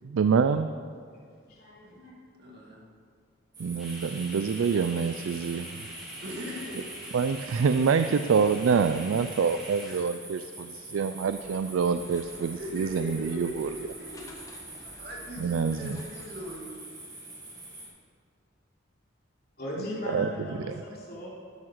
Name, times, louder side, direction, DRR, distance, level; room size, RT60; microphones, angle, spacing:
voice 1, 0.1-0.7 3.6-5.8 7.1-13.7 15.4-16.0 20.1-20.3, right 5 dB, 85° right, 10 dB, 0.4 m, -26 dB
voice 2, 1.1-2.1 19.6-21.3, left 1 dB, 50° left, -5 dB, 3.1 m, -38 dB
voice 3, 2.4-2.8 6.2-7.0 12.5-14.3 14.6-16.8, left 1 dB, 55° right, -2 dB, 2.2 m, -40 dB
sound 1, 3.5-17.9, right 2 dB, 20° right, 2.7 m, -45 dB
sound 2, 3.8-10.0, equal, ahead, 2.8 m, -44 dB
sound 3, 11.3-16.3, left 1 dB, 15° left, 1.2 m, -51 dB
12.5 x 10.5 x 4.6 m, 2.1 s
head